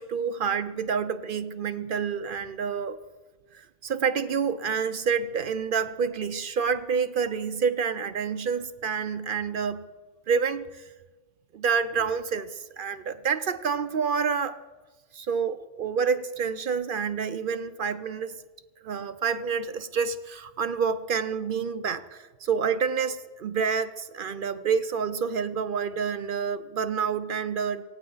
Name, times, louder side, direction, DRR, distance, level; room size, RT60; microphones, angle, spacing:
voice 1, 0.0-3.0 3.5-9.8 10.3-10.9 11.5-14.6 15.1-18.4 18.8-27.8, right 6 dB, 60° right, 0.5 m, -28 dB
19.0 x 16.5 x 3.9 m
omnidirectional pair, 1.4 m